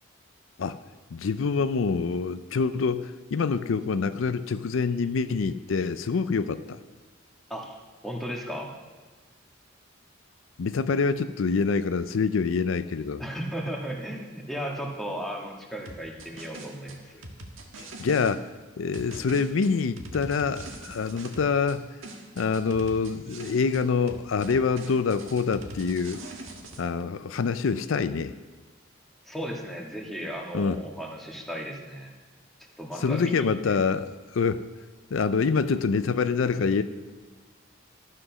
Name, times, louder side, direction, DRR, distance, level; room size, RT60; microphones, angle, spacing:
voice 1, 1.1-6.8 10.6-13.2 17.8-18.5 18.8-21.9 22.4-26.2 26.8-28.3 30.5-30.8 33.0-34.7 35.1-36.8, left 5 dB, 80° left, 12 dB, 0.4 m, -26 dB
voice 2, 8.0-8.7 13.2-17.2 29.2-32.1 32.8-33.8, equal, ahead, -1 dB, 1.6 m, -35 dB
sound 1, 15.9-18.4 18.9-21.8 22.0-23.8 24.1-26.8, right 2 dB, 85° right, 1.5 m, -42 dB
12.5 x 7.7 x 6.1 m, 1.4 s
head